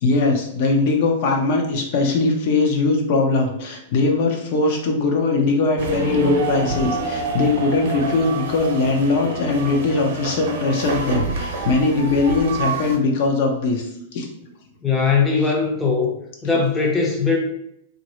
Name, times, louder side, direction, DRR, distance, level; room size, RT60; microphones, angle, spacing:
voice 1, 0.0-14.3, left 3 dB, 50° left, 2 dB, 0.7 m, -20 dB
sound 1, 5.8-13.0, right 3 dB, 65° right, 0.7 m, -27 dB
voice 2, 14.8-16.1 16.4-17.4, left 5 dB, 10° left, -2 dB, 0.6 m, -19 dB
3.1 x 2.5 x 3.0 m, 0.73 s
supercardioid pair, 150°, 0 cm